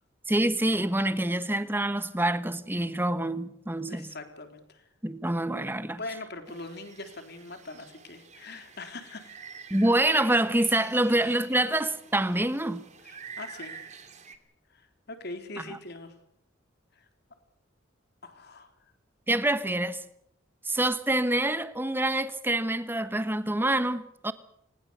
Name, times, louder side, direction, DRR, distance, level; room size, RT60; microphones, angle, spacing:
voice 1, 0.3-4.1 5.0-6.0 9.7-12.8 15.6-15.8 19.3-20.0 20.6-24.3, right 1 dB, 10° right, 1.2 m, -26 dB
voice 2, 3.9-4.9 6.0-9.6 13.0-14.0 14.7-16.2 17.0-17.1 18.2-18.7, left 2 dB, 55° left, 3.7 m, -42 dB
sound 1, 6.5-14.3, right 6 dB, 35° right, 2.7 m, -48 dB
24.0 x 20.5 x 6.9 m
head